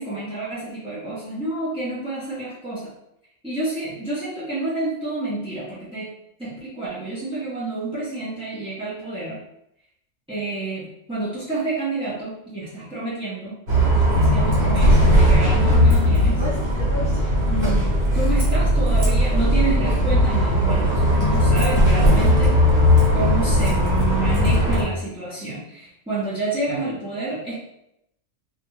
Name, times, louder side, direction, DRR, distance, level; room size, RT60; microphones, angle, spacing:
voice 1, 0.0-2.9 3.4-6.1 6.4-9.4 10.3-13.6 14.2-16.5 17.5-22.6 23.1-27.5, right 2 dB, 10° right, -9 dB, 0.4 m, -29 dB
Bus, 13.7-24.8, equal, 55° right, 1.1 m, -18 dB
2.5 x 2.3 x 3.0 m, 0.79 s
omnidirectional pair, 1.3 m